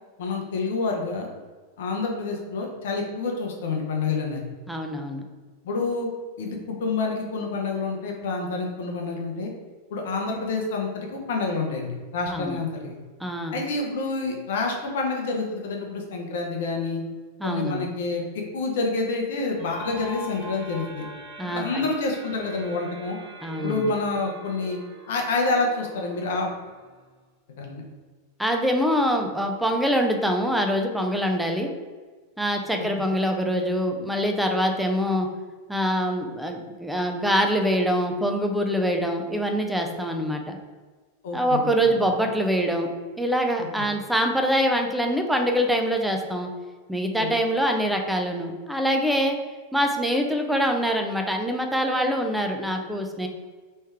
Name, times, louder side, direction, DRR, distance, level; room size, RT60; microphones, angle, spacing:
voice 1, 0.2-1.3 1.8-4.4 5.6-6.1 6.4-9.5 9.9-13.0 13.5-17.0 17.4-18.2 18.5-21.1 21.4-23.2 23.6-24.8 25.1-26.6 27.6-27.8 32.8-32.9 41.2-42.0 43.8-43.9 47.2-47.3, left 3 dB, 55° left, 1 dB, 0.7 m, -28 dB
voice 2, 4.7-5.2 12.3-12.6 13.2-13.6 17.4-17.9 21.4-21.6 23.4-23.9 28.4-31.7 32.4-35.3 35.7-40.6 41.3-42.9 43.2-46.5 46.9-49.4 49.7-53.3, equal, 5° right, 3 dB, 0.5 m, -24 dB
sound 1, 19.6-27.2, right 1 dB, 45° right, 1.3 m, -42 dB
3.2 x 3.1 x 3.5 m, 1.4 s
figure-of-eight pair, 90°, 0 cm